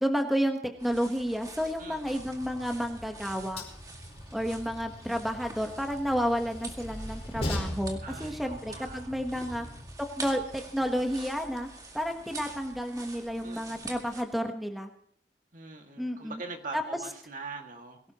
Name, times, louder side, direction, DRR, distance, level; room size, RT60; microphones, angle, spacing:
voice 1, 0.0-3.6 4.3-9.7 10.2-11.7 11.9-14.9 16.0-16.4 16.7-16.8, equal, ahead, 3 dB, 1.2 m, -31 dB
sound 1, 0.8-14.2, right 2 dB, 20° right, 2.0 m, -47 dB
voice 2, 1.8-2.2 8.0-9.9 13.4-13.9 15.5-18.0, right 3 dB, 45° right, 4 dB, 2.1 m, -43 dB
Train, 2.2-9.9, left 1 dB, 35° left, 4.8 m, -40 dB
22.5 x 17.5 x 3.0 m, 0.64 s
head